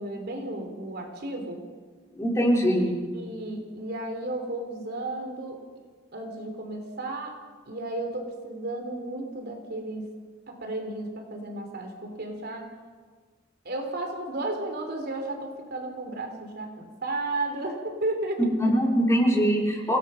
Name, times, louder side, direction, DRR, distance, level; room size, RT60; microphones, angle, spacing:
voice 1, 0.0-1.6 3.1-5.6 6.1-10.1 10.5-12.7 13.6-18.4, right 2 dB, 55° right, 4 dB, 3.6 m, -33 dB
voice 2, 2.1-2.9 18.6-20.0, equal, 15° left, -1 dB, 3.8 m, -22 dB
27.5 x 18.0 x 5.8 m, 1.5 s
head